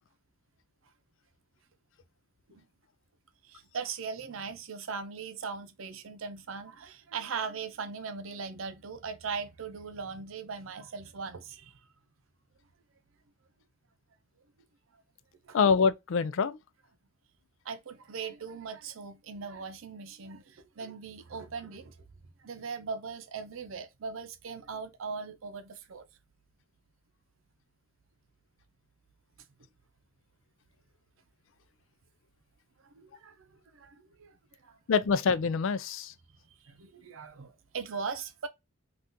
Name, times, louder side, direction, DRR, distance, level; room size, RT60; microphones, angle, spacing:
voice 1, 3.4-11.8 15.5-15.6 17.6-22.0 22.4-26.0 32.8-33.4 33.7-34.8 36.6-38.5, right 5 dB, 85° right, 0.6 m, -39 dB
voice 2, 15.5-16.6 34.9-36.1, left 5 dB, 70° left, 0.4 m, -25 dB
3.6 x 2.4 x 2.6 m
head